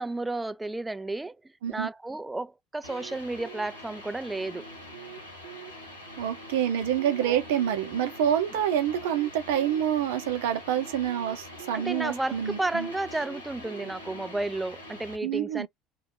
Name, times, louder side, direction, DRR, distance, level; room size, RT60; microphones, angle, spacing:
voice 1, 0.0-1.4 1.7-4.7 7.2-7.4 11.7-15.7, right 2 dB, 10° right, 0.3 m, -32 dB
sound 1, 2.8-15.1, right 1 dB, 85° left, 1.0 m, -43 dB
voice 2, 6.2-12.9 15.2-15.7, right 10 dB, 65° right, 0.7 m, -27 dB
2.8 x 2.3 x 3.5 m
figure-of-eight pair, 65°, 0 cm